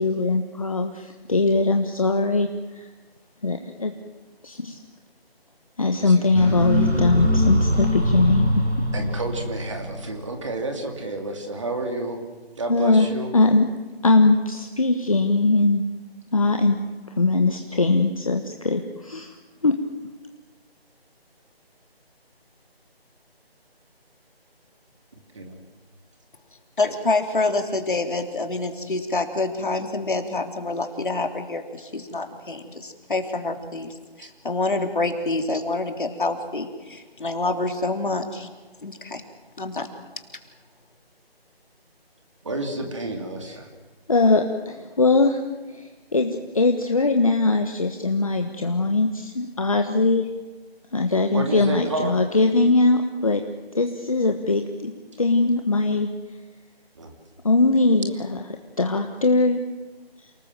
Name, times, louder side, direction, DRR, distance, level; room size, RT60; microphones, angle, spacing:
voice 1, 0.0-2.5 2.7-2.9 3.4-3.9 4.4-4.8 5.8-8.6 12.7-13.1 13.3-13.7 14.0-15.8 16.3-16.8 17.2-19.4 19.6-19.7 44.1-45.4 45.7-50.3 50.9-53.4 53.7-54.9 55.2-56.1 57.4-58.4 58.8-59.6, left 3 dB, 35° left, 4 dB, 1.3 m, -21 dB
sound 1, 6.3-10.3, equal, 85° right, 7.9 m, -23 dB
voice 2, 8.9-12.2 12.6-13.3 25.3-25.6 34.2-34.3 42.4-43.7 51.3-52.3 57.0-57.2, right 2 dB, 30° right, 3 dB, 2.8 m, -30 dB
voice 3, 26.8-38.5 38.8-39.2 39.6-39.9, left 2 dB, 55° left, 4 dB, 3.2 m, -27 dB
29.0 x 19.5 x 7.6 m, 1.2 s
figure-of-eight pair, 175°, 31 cm